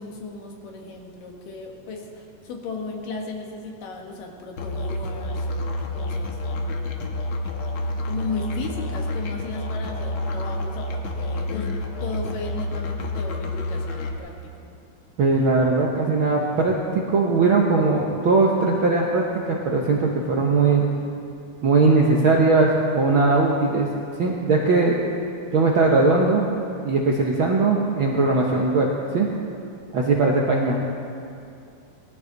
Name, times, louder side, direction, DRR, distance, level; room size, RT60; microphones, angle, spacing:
voice 1, 0.0-7.2 8.0-14.7, left 3 dB, 90° left, 1 dB, 3.2 m, -36 dB
Musical instrument, 4.6-14.2, left 1 dB, 65° left, 1.3 m, -29 dB
voice 2, 15.2-16.7 17.1-20.8 21.6-23.9 24.2-25.0 25.5-26.4 26.8-28.9 29.1-29.3 29.9-30.8, right 3 dB, 65° right, -2 dB, 1.2 m, -19 dB
19.0 x 14.0 x 4.0 m, 2.5 s
omnidirectional pair, 3.7 m